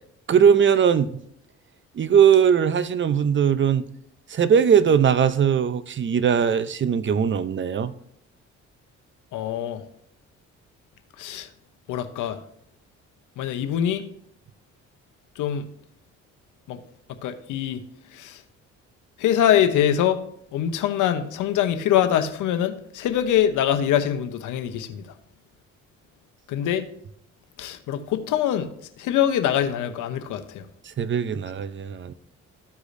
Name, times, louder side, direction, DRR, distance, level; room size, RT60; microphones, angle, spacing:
voice 1, 0.3-1.1 2.0-3.9 4.3-7.9 31.0-32.1, right 7 dB, 40° right, 0.6 m, -19 dB
voice 2, 9.3-9.8 11.2-11.5 11.9-12.4 13.4-14.0 15.4-15.7 16.7-16.8 17.2-17.8 18.1-18.4 19.2-20.2 20.5-25.0 26.5-26.9 27.6-28.7 29.0-30.6, left 10 dB, 90° left, 0.9 m, -23 dB
14.0 x 4.9 x 2.6 m
cardioid pair, 90°, 30 cm